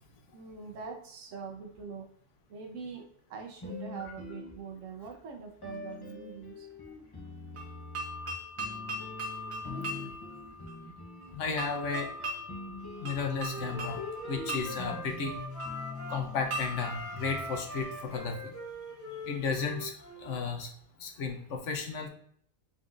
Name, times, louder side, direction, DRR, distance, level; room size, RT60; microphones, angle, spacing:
voice 1, 0.3-2.1 2.5-6.7, right 5 dB, 80° right, 4 dB, 1.1 m, -43 dB
sound 1, 3.6-5.1 5.6-17.8, left 2 dB, 25° left, 0.6 m, -44 dB
sound 2, 7.6-18.4, equal, 60° right, 1.3 m, -41 dB
voice 2, 11.3-12.1 13.0-14.0 14.3-15.3 16.1-18.5 19.2-19.9 20.2-20.7 21.0-22.1, left 5 dB, 70° left, 4 dB, 1.1 m, -33 dB
Wind instrument woodwind instrument, 12.9-16.3 16.7-20.4, equal, 35° right, 1.6 m, -43 dB
3.9 x 3.8 x 2.5 m, 0.64 s
omnidirectional pair, 1.3 m